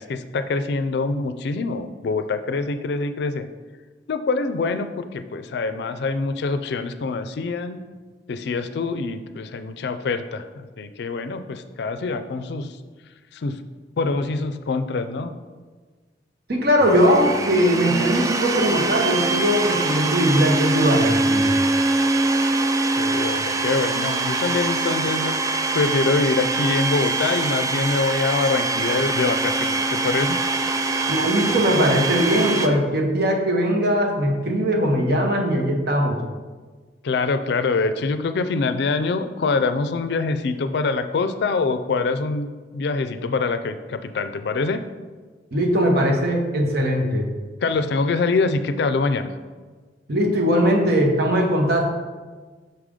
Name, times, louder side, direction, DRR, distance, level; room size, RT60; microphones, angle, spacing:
voice 1, 0.0-3.5 4.1-7.8 8.3-12.8 13.3-13.6 14.0-15.3 22.9-30.4 37.0-42.5 42.7-44.8 47.6-49.3, left 3 dB, 65° left, 10 dB, 0.4 m, -24 dB
voice 2, 16.5-21.6 31.1-36.2 45.5-47.3 50.1-51.9, equal, 65° right, 1 dB, 1.0 m, -20 dB
Domestic sounds home sounds, 16.8-32.7, right 3 dB, 20° right, 0.3 m, -23 dB
5.7 x 4.9 x 3.7 m, 1.4 s
head